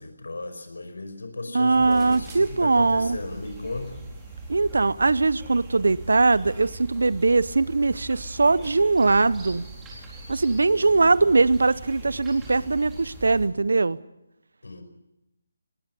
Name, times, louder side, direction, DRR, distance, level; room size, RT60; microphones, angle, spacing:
voice 1, 0.0-4.0 14.6-14.8, left 2 dB, 80° left, 7 dB, 5.2 m, -35 dB
voice 2, 1.5-3.2 4.5-9.6 10.3-14.0, right 3 dB, 75° right, 20 dB, 0.8 m, -21 dB
sound 1, 1.7-13.5, right 2 dB, 10° right, 4.4 m, -41 dB
Acoustic guitar / Strum, 1.8-6.8, left 3 dB, 55° left, 3.7 m, -54 dB
sound 2, 5.5-13.4, equal, 5° left, 5.7 m, -52 dB
20.0 x 17.5 x 9.8 m, 0.91 s
figure-of-eight pair, 160°, 0 cm